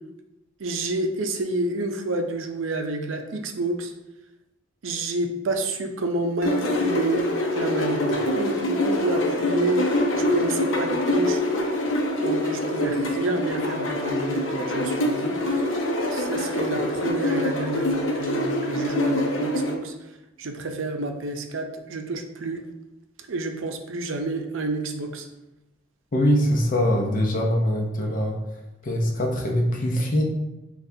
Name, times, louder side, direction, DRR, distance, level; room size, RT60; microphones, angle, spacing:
voice 1, 0.6-3.9 4.8-7.3 7.5-8.0 8.3-11.4 12.2-15.7 16.1-20.1 20.4-22.6 23.3-25.3, right 2 dB, 80° right, 4 dB, 0.5 m, -29 dB
sound 1, 6.4-19.7, left 1 dB, 80° left, 0.6 m, -25 dB
voice 2, 26.1-28.4 28.8-30.2, equal, 45° left, 0 dB, 0.7 m, -22 dB
6.3 x 2.3 x 2.7 m, 0.96 s
head